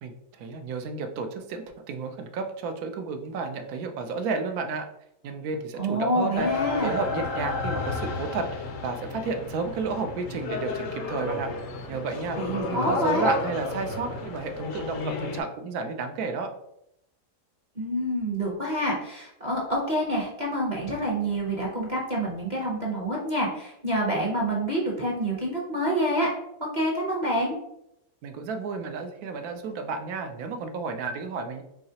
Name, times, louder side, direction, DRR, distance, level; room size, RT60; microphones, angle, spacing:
voice 1, 0.0-4.9 5.2-6.5 6.8-11.5 11.9-12.4 12.7-16.5 28.2-31.6, right 4 dB, 75° right, 6 dB, 1.0 m, -32 dB
voice 2, 5.8-6.9 12.4-13.3 17.8-26.3 26.7-27.6, right 1 dB, 35° right, -3 dB, 0.8 m, -27 dB
sound 1, 6.3-15.4, left 3 dB, 65° left, 0.9 m, -32 dB
4.8 x 3.1 x 2.8 m, 0.79 s
omnidirectional pair, 1.7 m